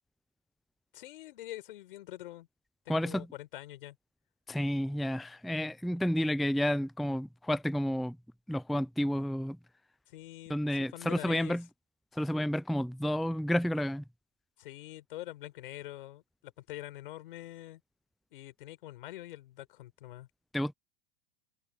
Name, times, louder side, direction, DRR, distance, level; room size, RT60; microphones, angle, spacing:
voice 1, 0.9-2.5 2.8-4.0 10.1-11.6 14.6-17.8 18.3-20.3, left 15 dB, 65° left, 5.1 m, -45 dB
voice 2, 2.9-3.3 4.5-8.2 8.5-9.6 10.5-11.6 12.1-14.0 20.5-20.7, equal, ahead, 0.5 m, -30 dB
hypercardioid pair, 95°, 29 cm